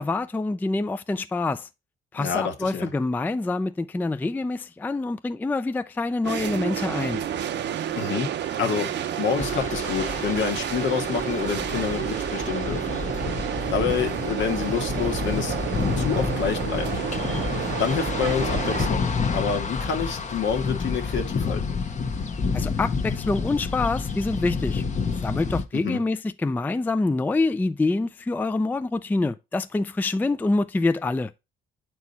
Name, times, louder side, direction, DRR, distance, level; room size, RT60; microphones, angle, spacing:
voice 1, 0.0-1.7 2.1-7.2 22.5-24.8 25.2-31.3, left 3 dB, 10° left, 0.3 m, -26 dB
voice 2, 2.2-2.9 8.0-8.3 8.6-8.9 9.2-13.0 13.7-15.5 16.0-16.9 17.8-21.8 25.7-26.0, left 6 dB, 70° left, 1.5 m, -27 dB
sound 1, 6.2-18.9, right 10 dB, 65° right, 0.7 m, -30 dB
sound 2, 9.4-25.6, left 5 dB, 35° left, 0.9 m, -29 dB
8.2 x 4.6 x 4.2 m
cardioid pair, 90°, 20 cm